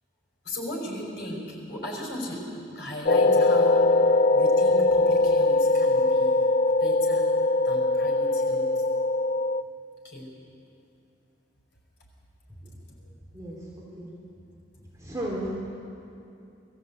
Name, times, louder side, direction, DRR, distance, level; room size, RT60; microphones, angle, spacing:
voice 1, 0.4-2.5 2.7-3.9 4.3-6.3 6.8-7.3 7.6-8.6 10.0-10.3, left 1 dB, 60° left, -2 dB, 5.5 m, -36 dB
sound 1, 3.1-9.6, left 2 dB, 45° left, 0.4 m, -21 dB
voice 2, 15.0-15.5, right 1 dB, 15° right, -5 dB, 3.3 m, -33 dB
21.0 x 14.5 x 8.6 m, 2.7 s
head